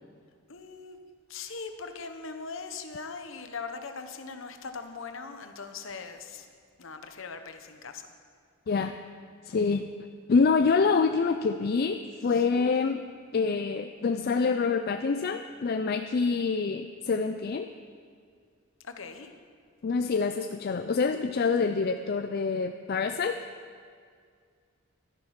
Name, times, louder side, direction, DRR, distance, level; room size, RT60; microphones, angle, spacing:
voice 1, 0.5-1.0 1.3-6.5 6.8-8.1 12.3-12.4 18.8-19.3, left 4 dB, 65° left, 7 dB, 1.0 m, -40 dB
voice 2, 8.7-9.0 9.4-9.9 10.3-13.0 13.3-17.7 19.8-23.4, left 4 dB, 45° left, 7 dB, 0.4 m, -26 dB
12.5 x 10.0 x 5.9 m, 2.1 s
head